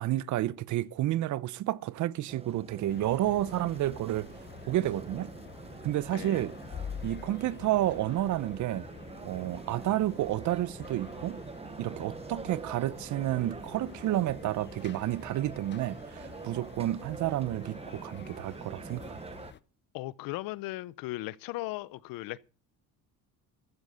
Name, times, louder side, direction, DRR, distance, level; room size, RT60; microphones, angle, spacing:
voice 1, 0.0-4.3 4.7-5.3 5.8-6.5 7.0-8.8 9.2-11.4 11.8-19.0, right 14 dB, 55° right, 0.8 m, -30 dB
sound 1, 2.3-19.5, right 4 dB, 15° right, 0.8 m, -45 dB
sound 2, 2.9-19.6, left 8 dB, 30° left, 0.7 m, -48 dB
voice 2, 6.1-6.5 19.9-22.4, left 18 dB, 75° left, 0.7 m, -37 dB
14.5 x 7.7 x 6.7 m
cardioid pair, 110°, 34 cm